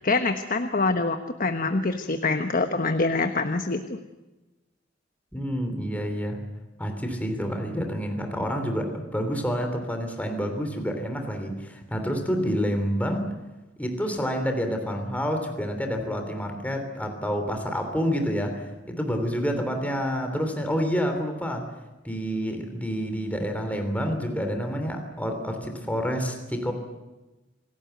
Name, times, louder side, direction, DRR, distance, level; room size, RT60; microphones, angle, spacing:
voice 1, 0.0-4.0, left 3 dB, 45° left, 7 dB, 1.2 m, -25 dB
voice 2, 5.3-6.4 6.8-13.3 13.8-21.7 22.0-26.7, equal, 10° left, 5 dB, 3.2 m, -28 dB
27.5 x 17.5 x 8.0 m, 1.1 s
head